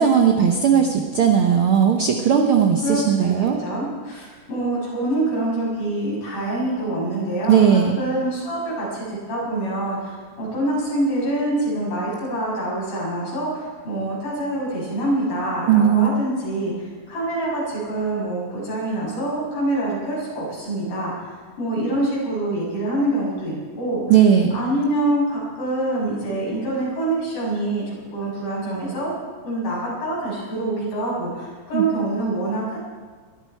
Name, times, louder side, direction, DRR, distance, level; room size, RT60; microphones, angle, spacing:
voice 1, 0.0-3.6 7.5-8.0 15.7-16.1 24.1-24.6 31.7-31.8, right 8 dB, 75° right, 3 dB, 1.2 m, -17 dB
voice 2, 2.8-24.0 24.5-29.1 29.4-32.8, right 1 dB, 90° left, -5 dB, 8.4 m, -25 dB
21.5 x 13.5 x 4.6 m, 1.5 s
omnidirectional pair, 3.9 m